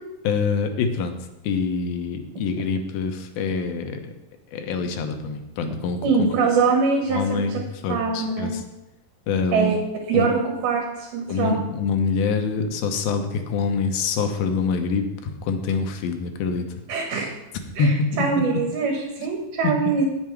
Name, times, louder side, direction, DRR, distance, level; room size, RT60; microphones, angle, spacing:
voice 1, 0.2-1.1 1.4-4.0 4.5-6.0 7.1-8.6 9.3-9.7 10.1-10.3 11.3-16.8 17.8-18.3 19.2-19.3 19.6-19.7, left 5 dB, 80° left, 6 dB, 2.7 m, -25 dB
voice 2, 6.0-7.6 7.9-8.5 9.5-9.8 10.1-11.6 16.9-17.3 17.8-20.0, right 4 dB, 85° right, 1 dB, 3.2 m, -23 dB
9.4 x 7.3 x 4.6 m, 0.95 s
omnidirectional pair, 4.2 m